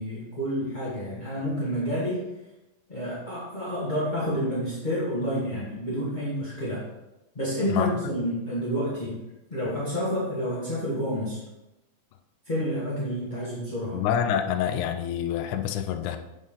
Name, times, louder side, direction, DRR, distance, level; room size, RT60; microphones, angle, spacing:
voice 1, 0.0-2.2 2.9-6.8 7.3-9.1 9.5-11.4 12.4-14.0, equal, 30° left, -9 dB, 0.8 m, -29 dB
voice 2, 13.9-16.2, left 9 dB, 80° left, 7 dB, 1.8 m, -27 dB
7.9 x 6.3 x 3.7 m, 0.96 s
omnidirectional pair, 4.0 m